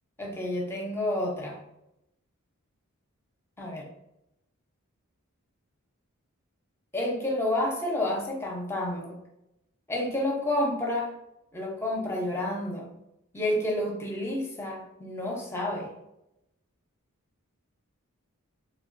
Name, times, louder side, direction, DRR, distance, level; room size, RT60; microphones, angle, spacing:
voice 1, 0.2-1.6 3.6-3.9 6.9-9.2 9.9-11.1 11.5-12.9 13.3-15.9, left 1 dB, 10° left, -1 dB, 0.7 m, -29 dB
3.3 x 3.1 x 2.5 m, 0.85 s
head